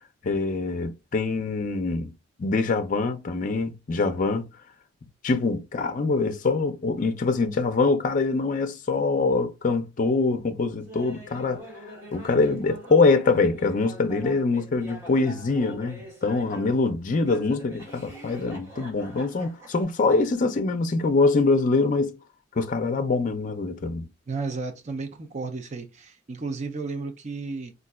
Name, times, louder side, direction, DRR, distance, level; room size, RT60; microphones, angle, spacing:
voice 1, 0.2-2.1 2.4-4.5 5.2-11.6 12.1-22.1 22.6-24.1, left 3 dB, 45° left, 0.4 m, -24 dB
Laughter, 10.9-16.8 17.2-19.8, left 1 dB, 15° right, 1.1 m, -44 dB
voice 2, 24.3-27.7, right 4 dB, 35° right, 0.5 m, -33 dB
3.9 x 2.4 x 2.3 m
head